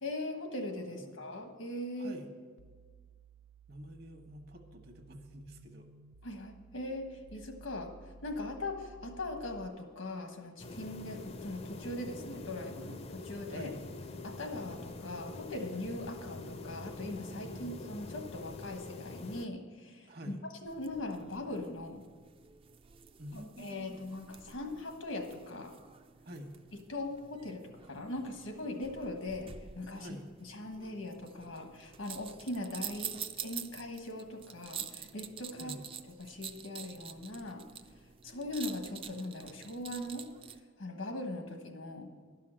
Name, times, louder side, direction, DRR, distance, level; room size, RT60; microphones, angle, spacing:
voice 1, 0.0-2.2 6.2-13.7 14.2-20.1 20.6-22.0 23.3-25.7 26.9-30.1 30.4-35.8 36.2-37.6 38.2-40.3 40.8-42.1, left 2 dB, 90° left, 4 dB, 1.4 m, -40 dB
voice 2, 2.0-2.3 3.7-5.9 13.5-13.8 17.5-17.7 20.1-20.4 23.2-24.0 26.2-26.5 29.9-30.3 35.6-35.8, equal, 55° right, 5 dB, 1.1 m, -47 dB
sound 1, 2.6-9.7, right 2 dB, 85° right, 0.5 m, -56 dB
sound 2, 10.6-19.5, left 2 dB, 30° left, 0.4 m, -45 dB
sound 3, 20.7-40.6, right 8 dB, 30° right, 0.4 m, -48 dB
11.5 x 5.7 x 7.5 m, 1.5 s
head